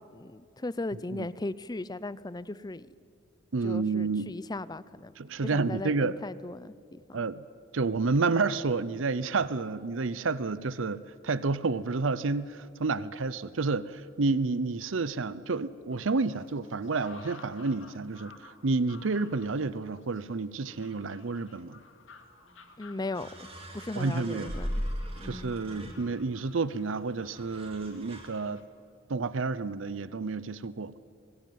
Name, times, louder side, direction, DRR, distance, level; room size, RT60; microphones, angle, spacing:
voice 1, 0.1-2.9 3.6-5.1 5.4-6.7 22.8-23.5 23.7-24.7 25.2-25.5, left 2 dB, 20° left, 18 dB, 0.5 m, -37 dB
voice 2, 0.9-1.3 3.5-4.3 5.2-6.2 7.1-7.4 7.7-21.8 24.0-24.5 25.2-28.6 29.1-31.0, right 3 dB, 85° right, 17 dB, 0.7 m, -30 dB
sound 1, 15.9-28.7, left 4 dB, 85° left, 2.3 m, -55 dB
sound 2, 22.5-22.6 23.1-26.4 27.4-28.3, equal, 30° right, 3.8 m, -38 dB
24.5 x 20.5 x 9.4 m, 2.2 s
head